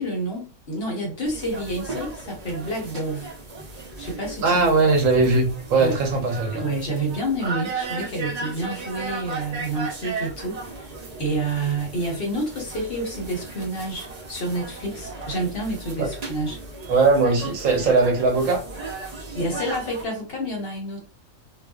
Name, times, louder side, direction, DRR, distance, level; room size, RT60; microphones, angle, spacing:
voice 1, 0.0-3.3 4.0-4.6 5.8-6.0 6.5-10.9 11.2-16.6 19.3-21.1, right 1 dB, 50° left, 1.0 m, -29 dB
sound 1, 1.2-20.1, right 3 dB, 50° right, 0.5 m, -36 dB
voice 2, 4.4-6.7 16.0-16.1 16.9-18.6, right 3 dB, 80° right, 1.1 m, -20 dB
2.4 x 2.3 x 2.2 m
omnidirectional pair, 1.4 m